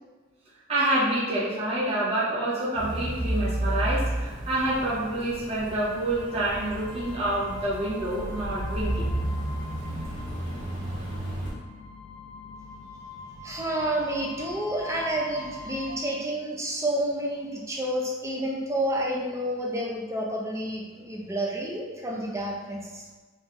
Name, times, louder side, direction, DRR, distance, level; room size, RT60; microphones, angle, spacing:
voice 1, 0.7-9.1, right 1 dB, 30° right, -10 dB, 1.0 m, -27 dB
sound 1, 2.7-11.5, right 1 dB, 65° right, 1.0 m, -32 dB
sound 2, 5.1-16.0, left 3 dB, 65° left, 0.4 m, -44 dB
voice 2, 13.4-23.0, right 1 dB, 15° right, -2 dB, 0.5 m, -29 dB
3.1 x 2.6 x 3.4 m, 1.3 s
head